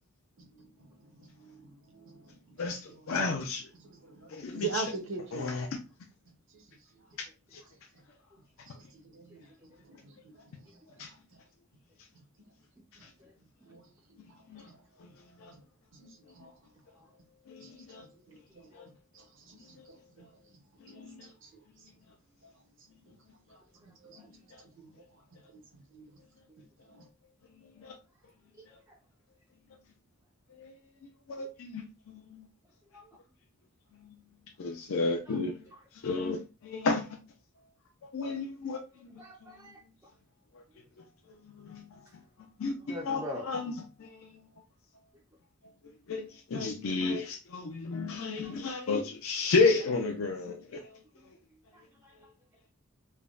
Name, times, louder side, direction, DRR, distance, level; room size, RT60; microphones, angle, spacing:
voice 1, 0.4-0.7 1.1-2.6 3.8-4.3 4.6-5.5 6.5-6.6 8.7-9.5 9.9-10.5 11.3-11.4 13.7-13.8 14.7-14.8 15.9-16.1 16.3-16.5 17.6-17.8 18.3-18.7 19.1-20.2 20.9-21.0 21.4-21.5 22.4-22.5 24.0-24.2 24.7-24.9 25.5-25.6 25.9-26.0 26.9-27.0, right 4 dB, 60° right, 0.7 m, -42 dB
voice 2, 2.6-3.7 4.3-4.9 5.3-5.8 7.5-7.6 11.0-11.1 13.0-13.1 14.5-14.6 15.0-15.1 15.4-15.5 16.4-16.5 17.5-18.1 18.7-18.9 19.8-19.9 20.8-21.3 24.5-24.6 27.8-27.9 30.5-30.7 31.3-32.5 34.6-35.6 35.9-37.2 38.1-39.1 40.5-40.6 41.6-41.8 42.6-43.7 44.0-44.4 46.1-50.9, left 3 dB, 70° left, 0.4 m, -32 dB
voice 3, 13.0-13.3 26.5-26.6 28.9-29.0 32.9-33.1 35.3-35.4 39.2-39.8 42.9-43.5 48.4-48.6 51.7-52.1, left 1 dB, 15° right, 0.4 m, -43 dB
3.4 x 2.1 x 2.3 m
head